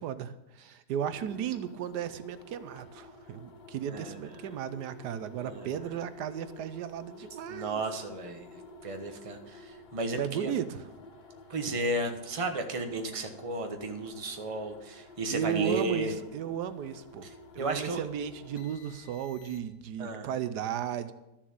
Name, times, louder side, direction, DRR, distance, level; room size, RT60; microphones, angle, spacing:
voice 1, 0.0-7.8 10.2-10.8 15.3-17.3 17.5-21.1, right 9 dB, 80° right, 12 dB, 1.3 m, -35 dB
sound 1, 0.9-19.9, left 2 dB, 40° left, 1.3 m, -51 dB
voice 2, 3.8-4.3 5.4-5.8 7.5-10.5 11.5-16.2 17.2-18.0 20.0-20.3, right 2 dB, 25° right, 5 dB, 1.0 m, -34 dB
13.0 x 7.4 x 7.1 m, 0.92 s
omnidirectional pair, 1.7 m